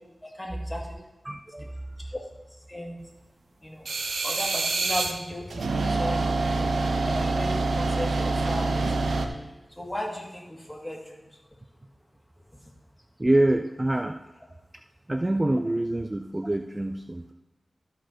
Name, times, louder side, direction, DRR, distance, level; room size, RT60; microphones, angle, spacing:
voice 1, 0.4-0.8 2.7-3.0 3.6-3.8 4.2-9.1 9.8-11.2, left 1 dB, 15° left, -1 dB, 2.2 m, -36 dB
voice 2, 1.2-1.8 13.2-14.2 15.1-17.3, right 1 dB, 25° right, 6 dB, 0.4 m, -26 dB
sound 1, 3.9-5.1 5.5-9.3, right 3 dB, 85° right, 0.7 m, -26 dB
13.0 x 4.5 x 4.6 m, 1.1 s
cardioid pair, 45°, 0 cm